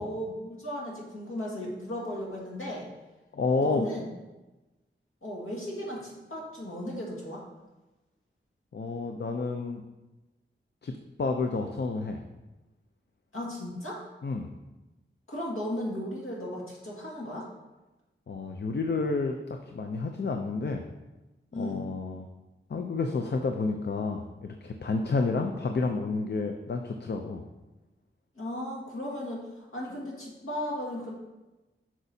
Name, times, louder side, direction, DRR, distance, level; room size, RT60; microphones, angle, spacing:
voice 1, 0.0-2.9 3.6-4.0 5.2-7.4 13.3-14.0 15.3-17.5 21.5-21.8 28.4-31.1, left 1 dB, 85° left, -4 dB, 1.8 m, -36 dB
voice 2, 3.3-3.9 8.7-9.8 10.8-12.2 14.2-14.5 18.3-20.8 21.6-22.3 22.7-27.4, left 3 dB, 55° left, 5 dB, 0.5 m, -30 dB
8.0 x 6.1 x 2.7 m, 1.1 s
wide cardioid pair, 85°, 21 cm